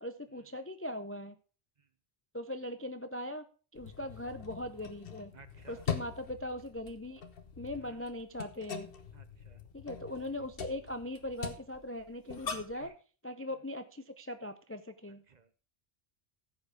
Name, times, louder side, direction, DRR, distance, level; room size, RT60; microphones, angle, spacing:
voice 1, 0.0-1.4 2.3-3.4 3.7-5.3 5.7-7.2 7.6-8.9 9.7-12.9 13.2-15.2, left 1 dB, 20° left, 10 dB, 0.4 m, -40 dB
sound 1, 3.7-12.9, left 6 dB, 60° left, 1.3 m, -43 dB
voice 2, 5.3-5.9 7.7-8.1 9.1-9.6 10.3-10.4 12.7-13.0 13.6-13.7 15.3-15.5, right 5 dB, 45° right, 12 dB, 0.8 m, -58 dB
14.5 x 5.4 x 4.9 m, 0.38 s
omnidirectional pair, 1.1 m